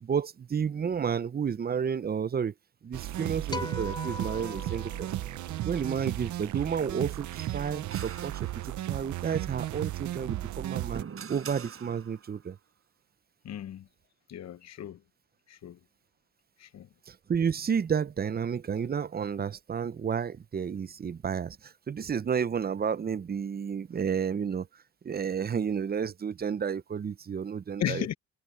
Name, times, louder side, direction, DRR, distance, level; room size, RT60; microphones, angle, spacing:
voice 1, 0.0-2.5 2.8-5.1 5.6-11.0 11.3-12.6 17.1-24.7 25.0-28.1, right 7 dB, 30° right, 0.7 m, -31 dB
sound 1, 2.9-11.0, right 14 dB, 70° right, 0.8 m, -35 dB
sound 2, 3.5-6.0, left 2 dB, 15° left, 3.3 m, -40 dB
sound 3, 7.3-9.1 10.4-12.4, right 7 dB, 45° right, 5.4 m, -45 dB
voice 2, 13.4-13.9 14.3-15.0 15.5-15.8 16.6-16.9 27.8-28.1, left 11 dB, 60° left, 1.0 m, -35 dB
cardioid pair, 90°, 30 cm